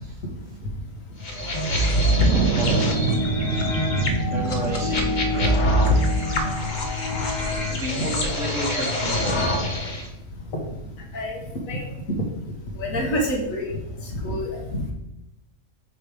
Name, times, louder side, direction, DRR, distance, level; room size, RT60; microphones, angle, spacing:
sound 1, 1.2-10.0, left 1 dB, 40° left, 0.8 m, -24 dB
sound 2, 1.3-6.5, left 2 dB, 65° left, 1.9 m, -31 dB
Wind, 1.9-8.5, right 7 dB, 90° right, 1.0 m, -29 dB
voice 1, 2.6-3.2 3.8-3.9 4.3-5.8 7.7-10.1, equal, 70° right, -3 dB, 2.2 m, -32 dB
voice 2, 12.8-13.7 14.2-14.5, equal, 85° left, 1 dB, 1.6 m, -26 dB
7.9 x 3.2 x 4.9 m, 0.91 s
omnidirectional pair, 1.4 m